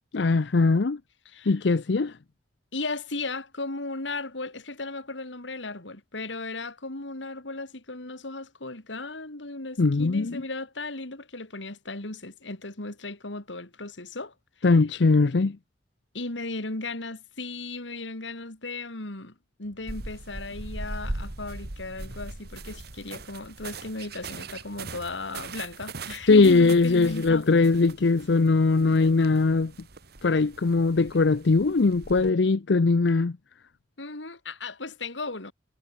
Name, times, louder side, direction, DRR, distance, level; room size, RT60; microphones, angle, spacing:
voice 1, 0.1-1.0 1.5-2.1 9.8-10.4 14.6-15.6 26.3-29.7 30.2-33.3, left 3 dB, 70° left, 0.6 m, -21 dB
voice 2, 1.2-1.6 2.7-14.3 16.1-19.3 19.6-27.5 34.0-35.5, left 2 dB, 90° left, 3.2 m, -36 dB
Train, 19.6-27.5, equal, 85° right, 4.9 m, -54 dB
sound 1, 19.9-32.3, right 2 dB, 60° right, 2.0 m, -40 dB
head